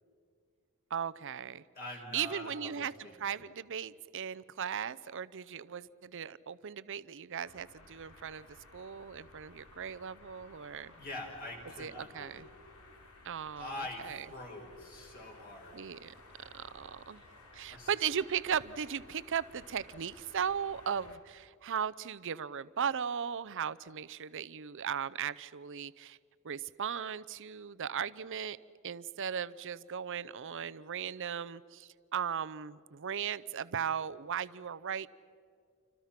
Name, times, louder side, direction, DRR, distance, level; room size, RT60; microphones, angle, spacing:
voice 1, 0.9-1.6 2.1-2.9 3.2-8.5 8.7-10.9 11.8-12.5 13.2-14.2 15.7-16.1 16.5-17.2 17.5-26.2 26.4-28.6 28.8-35.1, right 8 dB, 60° right, 17 dB, 0.6 m, -37 dB
voice 2, 1.7-3.3 10.9-12.4 13.5-15.8 17.7-17.9, left 1 dB, 45° left, 0 dB, 5.9 m, -44 dB
sound 1, 7.4-21.2, left 2 dB, 90° left, 3.3 m, -57 dB
29.5 x 25.5 x 5.9 m, 2.2 s
head